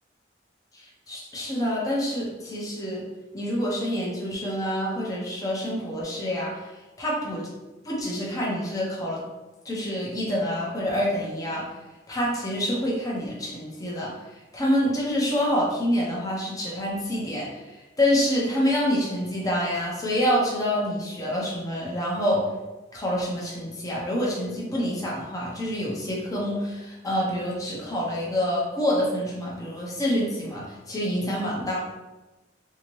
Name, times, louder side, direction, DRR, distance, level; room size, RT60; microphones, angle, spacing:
voice 1, 1.1-3.0 3.3-6.6 7.0-7.5 7.8-9.2 9.6-11.6 12.1-14.1 14.5-22.4 22.9-31.8, equal, 20° left, -4 dB, 0.7 m, -27 dB
3.4 x 2.8 x 3.0 m, 1.1 s
head